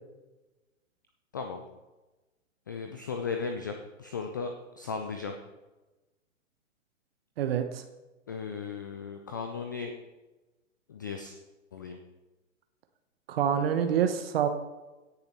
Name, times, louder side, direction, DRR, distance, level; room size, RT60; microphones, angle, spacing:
voice 1, 1.3-1.6 2.7-5.4 8.3-9.9 10.9-11.4 11.7-12.0, left 5 dB, 15° left, 5 dB, 0.3 m, -36 dB
voice 2, 7.4-7.8 13.3-14.5, right 8 dB, 45° right, 7 dB, 1.1 m, -26 dB
17.0 x 6.9 x 4.2 m, 1.1 s
figure-of-eight pair, 120°, 39 cm